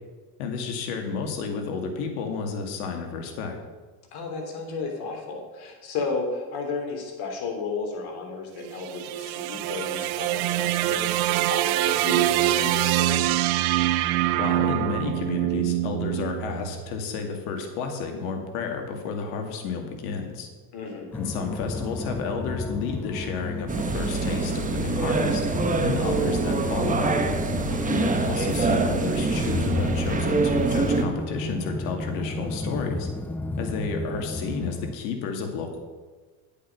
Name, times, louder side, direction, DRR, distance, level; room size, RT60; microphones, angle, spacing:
voice 1, 0.4-3.6 14.4-20.5 21.1-25.4 25.8-27.2 27.9-33.1 33.6-35.8, left 5 dB, 75° left, 4 dB, 2.3 m, -31 dB
voice 2, 4.1-13.3 20.7-21.1 27.7-28.1, left 4 dB, 60° left, 2 dB, 3.2 m, -33 dB
sound 1, 8.6-16.9, right 15 dB, 80° right, 0.7 m, -25 dB
sound 2, 21.1-35.0, left 2 dB, 5° left, 0.4 m, -32 dB
sound 3, 23.7-31.0, right 4 dB, 20° right, 1.1 m, -25 dB
10.5 x 8.3 x 5.9 m, 1.3 s
supercardioid pair, 105°, 42 cm